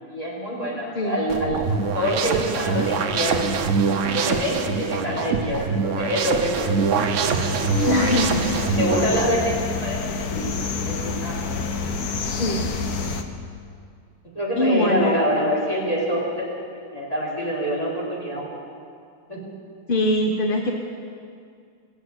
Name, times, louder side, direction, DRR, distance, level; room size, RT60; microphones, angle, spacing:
voice 1, 0.1-1.6 1.9-3.5 4.0-7.1 7.9-8.2 8.8-9.5 9.8-10.5 10.9-11.6 14.3-16.4 16.8-18.5 19.3-19.4, equal, 15° left, -5 dB, 3.9 m, -26 dB
sound 1, 1.3-9.3, right 5 dB, 75° right, 0.6 m, -24 dB
sound 2, 6.9-13.2, left 4 dB, 60° left, 1.1 m, -28 dB
voice 2, 7.8-8.4 12.4-12.7 14.6-15.2 19.9-20.7, left 1 dB, 45° left, 1 dB, 0.7 m, -22 dB
19.0 x 7.8 x 7.9 m, 2.3 s
omnidirectional pair, 2.3 m